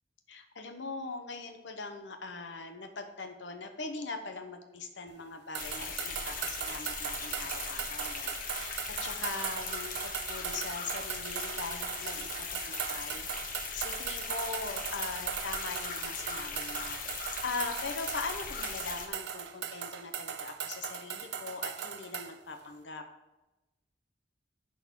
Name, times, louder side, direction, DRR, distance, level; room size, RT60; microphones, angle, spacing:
voice 1, 0.3-8.7 9.0-23.0, left 3 dB, 75° left, 6 dB, 1.0 m, -41 dB
sound 1, 5.5-22.3, right 8 dB, 65° right, 0.6 m, -39 dB
sound 2, 5.6-19.1, left 5 dB, 50° left, 1.2 m, -39 dB
10.5 x 4.0 x 6.2 m, 1.0 s
head